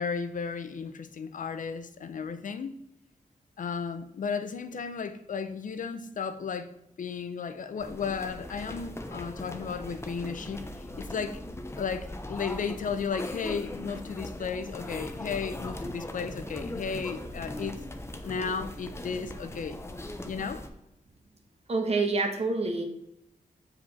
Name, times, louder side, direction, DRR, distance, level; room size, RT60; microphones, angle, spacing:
voice 1, 0.0-2.8 3.6-6.7 7.0-11.4 11.8-17.8 18.2-19.8 20.2-20.7, left 6 dB, 70° left, 10 dB, 0.7 m, -34 dB
sound 1, 7.8-20.7, left 1 dB, 20° left, 0.8 m, -39 dB
voice 2, 21.7-22.8, right 3 dB, 45° right, 4 dB, 1.4 m, -27 dB
7.7 x 5.0 x 4.2 m, 0.80 s
wide cardioid pair, 110°, 14 cm